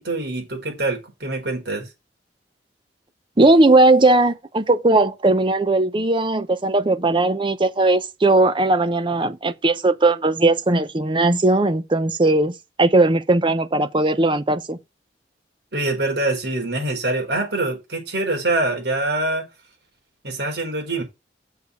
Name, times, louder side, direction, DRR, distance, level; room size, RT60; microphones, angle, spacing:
voice 1, 0.0-1.9 15.7-19.5 20.2-21.0, right 2 dB, 70° right, 4.4 m, -24 dB
voice 2, 3.4-12.5 12.8-14.8, right 2 dB, 25° right, 0.7 m, -18 dB
6.6 x 4.8 x 6.8 m
head